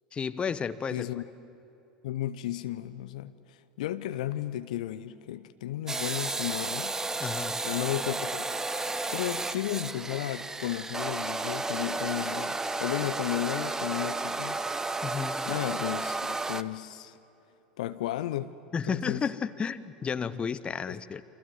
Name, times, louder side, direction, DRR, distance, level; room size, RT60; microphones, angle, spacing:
voice 1, 0.1-1.1 7.2-7.6 15.0-15.5 18.7-21.2, left 6 dB, 25° left, 1.0 m, -32 dB
voice 2, 0.9-1.2 2.0-7.0 7.6-8.5 9.1-14.6 15.5-17.2 17.8-18.5 18.9-19.2 20.9-21.0, left 13 dB, 60° left, 0.8 m, -34 dB
sound 1, 5.9-16.6, right 3 dB, 10° right, 0.8 m, -32 dB
28.5 x 26.5 x 7.9 m
figure-of-eight pair, 75°, 4 cm